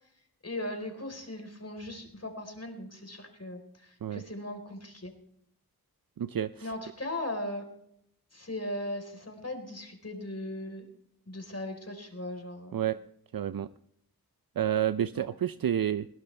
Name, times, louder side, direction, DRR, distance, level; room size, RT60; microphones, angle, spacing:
voice 1, 0.4-5.1 6.6-7.7 8.3-10.9 11.3-12.8 15.1-15.3, left 1 dB, 40° left, 5 dB, 4.1 m, -38 dB
voice 2, 6.2-6.7 12.7-13.0 13.3-13.7 14.6-16.1, right 10 dB, 65° right, 14 dB, 0.5 m, -29 dB
21.0 x 16.5 x 3.3 m, 0.75 s
cardioid pair, 40°, 37 cm